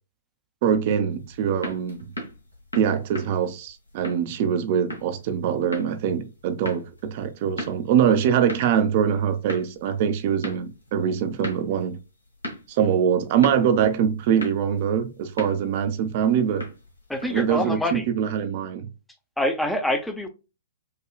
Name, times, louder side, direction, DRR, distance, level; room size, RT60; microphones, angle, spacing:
voice 1, 0.6-2.0 2.7-12.0 12.7-16.6 17.3-18.9, right 8 dB, 45° right, 0.6 m, -23 dB
sound 1, 1.1-17.6, equal, 85° left, 1.4 m, -39 dB
voice 2, 17.1-18.1 19.4-20.3, left 1 dB, 5° left, 0.6 m, -25 dB
4.9 x 2.3 x 2.3 m
figure-of-eight pair, 110°, 0 cm